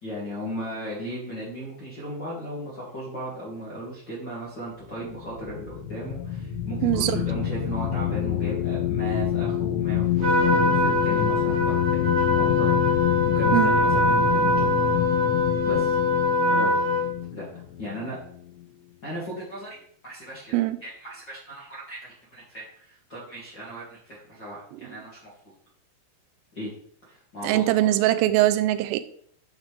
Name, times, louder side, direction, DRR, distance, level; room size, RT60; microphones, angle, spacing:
voice 1, 0.0-14.9 15.6-16.0 16.5-16.8 17.3-17.5 17.8-18.2 19.0-20.5 20.8-25.3 26.5-26.7 27.1-27.9, equal, 35° left, -7 dB, 1.9 m, -36 dB
sound 1, 4.9-18.6, left 11 dB, 85° left, 3.7 m, -27 dB
voice 2, 6.8-7.2 13.5-13.8 20.5-20.8 27.4-29.0, right 15 dB, 90° right, 11 dB, 3.2 m, -22 dB
Trumpet, 10.2-17.1, left 1 dB, 50° right, 1.9 m, -23 dB
10.5 x 6.4 x 3.5 m, 0.63 s
omnidirectional pair, 5.7 m